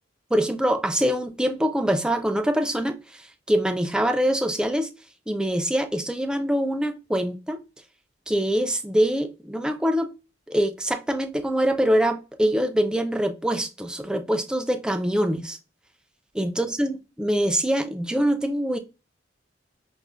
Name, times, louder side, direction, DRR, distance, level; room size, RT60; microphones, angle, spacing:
voice 1, 0.3-3.2 3.5-4.9 5.3-7.6 8.3-10.1 10.5-15.6 16.4-18.8, equal, 5° right, 0.3 m, -24 dB
5.0 x 2.1 x 2.3 m
head